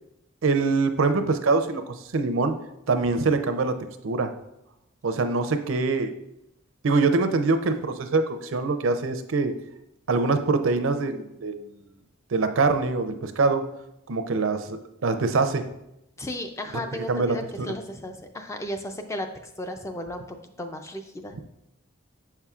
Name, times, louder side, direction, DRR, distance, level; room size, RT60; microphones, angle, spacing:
voice 1, 0.4-2.5 2.9-3.8 4.0-4.3 5.0-6.1 6.8-9.5 10.1-11.7 12.3-13.6 14.1-15.6 16.7-17.7, right 3 dB, 70° right, 9 dB, 0.5 m, -24 dB
voice 2, 16.2-19.3 19.6-21.3, left 1 dB, 15° left, 5 dB, 0.3 m, -34 dB
7.1 x 5.6 x 2.4 m, 0.84 s
head